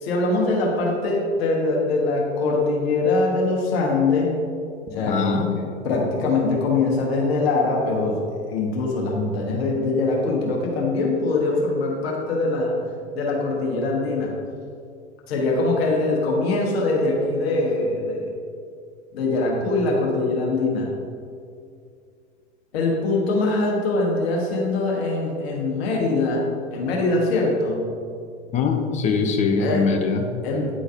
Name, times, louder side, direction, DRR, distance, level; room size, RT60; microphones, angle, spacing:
voice 1, 0.0-4.3 4.9-12.7 13.1-14.3 15.3-18.3 19.1-20.9 22.7-27.9 29.6-29.9 30.4-30.7, left 3 dB, 60° left, -2 dB, 1.4 m, -23 dB
voice 2, 5.1-5.5 28.5-30.2, left 5 dB, 20° left, 4 dB, 0.6 m, -22 dB
9.6 x 3.9 x 2.6 m, 2.3 s
figure-of-eight pair, 85°, 35 cm